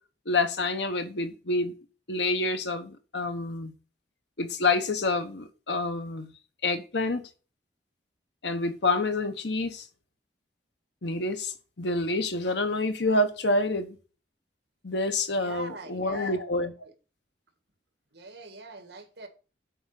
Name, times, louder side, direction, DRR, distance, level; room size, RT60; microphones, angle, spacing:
voice 1, 0.3-1.7 2.1-3.7 4.4-6.3 6.6-7.2 8.4-9.9 11.0-14.0 14.8-16.7, left 2 dB, 70° left, 1.2 m, -28 dB
voice 2, 15.4-16.4 18.1-19.3, right 2 dB, 65° right, 2.0 m, -42 dB
8.0 x 5.1 x 6.6 m
head